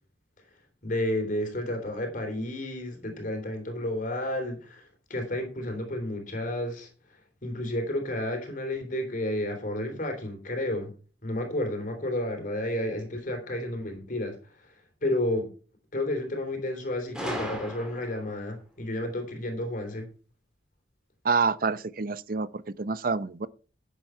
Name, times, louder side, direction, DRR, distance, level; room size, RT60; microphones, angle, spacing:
voice 1, 0.8-6.9 7.4-10.9 11.2-14.4 14.6-14.7 15.0-15.5 15.9-20.1, left 1 dB, 45° left, 3.3 m, -31 dB
Gunshot gunfire, 17.1-18.4, equal, 5° right, 3.4 m, -35 dB
voice 2, 21.2-23.5, right 4 dB, 50° right, 0.6 m, -27 dB
12.0 x 8.0 x 4.5 m
head